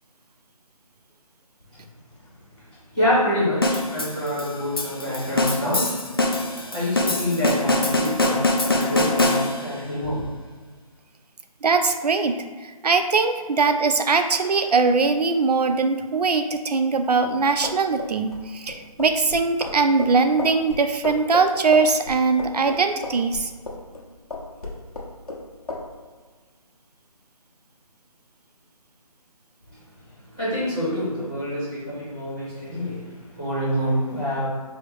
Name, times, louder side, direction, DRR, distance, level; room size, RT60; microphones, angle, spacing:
voice 1, 2.9-5.9 6.7-10.2 30.3-34.5, equal, 5° right, -12 dB, 0.6 m, -26 dB
sound 1, 3.6-9.8, left 2 dB, 40° left, 0.4 m, -23 dB
voice 2, 11.6-23.5, right 4 dB, 85° right, 8 dB, 0.5 m, -21 dB
sound 2, 17.5-24.0 24.3-25.4 25.7-25.9, left 2 dB, 65° left, 1.1 m, -33 dB
4.9 x 2.0 x 4.6 m, 1.4 s
hypercardioid pair, 175°, 20 cm